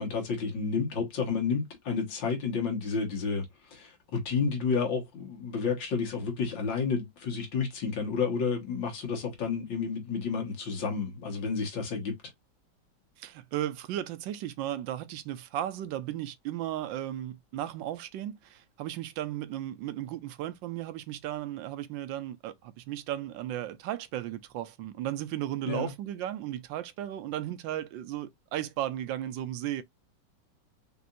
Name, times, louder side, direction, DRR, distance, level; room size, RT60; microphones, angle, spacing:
voice 1, 0.0-12.2 25.7-25.9, left 5 dB, 75° left, 2.2 m, -31 dB
voice 2, 13.2-29.8, right 12 dB, 80° right, 1.3 m, -35 dB
5.3 x 2.9 x 2.5 m
omnidirectional pair, 2.1 m